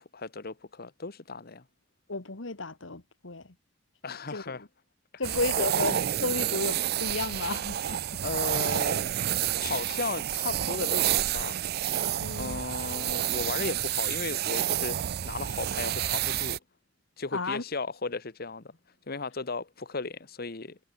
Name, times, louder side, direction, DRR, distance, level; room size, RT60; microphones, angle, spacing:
voice 1, 0.0-1.6 4.0-4.6 5.3-5.7 8.2-11.6 12.4-16.6 17.2-18.6 19.1-20.8, left 3 dB, 55° left, 1.3 m, -36 dB
voice 2, 2.1-3.5 4.3-4.7 5.2-8.2 12.2-12.6 17.3-17.6, left 3 dB, 80° left, 1.9 m, -33 dB
sound 1, 5.2-16.6, right 11 dB, 55° right, 0.4 m, -29 dB
head